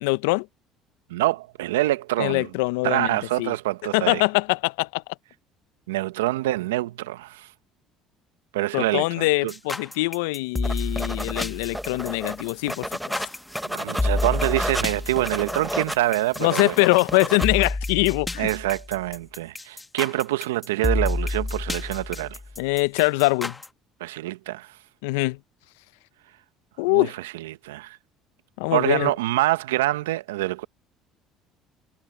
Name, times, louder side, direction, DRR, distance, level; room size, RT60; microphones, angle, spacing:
voice 1, 0.0-0.5 2.2-3.5 3.9-5.0 8.7-12.9 16.4-18.5 22.6-23.5 25.0-25.4 26.8-27.1 28.6-29.1, left 24 dB, 80° left, 0.8 m, -23 dB
voice 2, 1.1-2.5 2.8-4.2 5.9-7.5 8.5-9.5 13.7-16.7 18.4-22.4 24.0-24.8 26.9-28.0 28.7-30.7, right 16 dB, 85° right, 1.2 m, -26 dB
sound 1, 9.5-23.7, left 2 dB, 15° left, 2.5 m, -29 dB
sound 2, 10.6-17.6, equal, ahead, 1.3 m, -32 dB
hypercardioid pair, 65°, 0 cm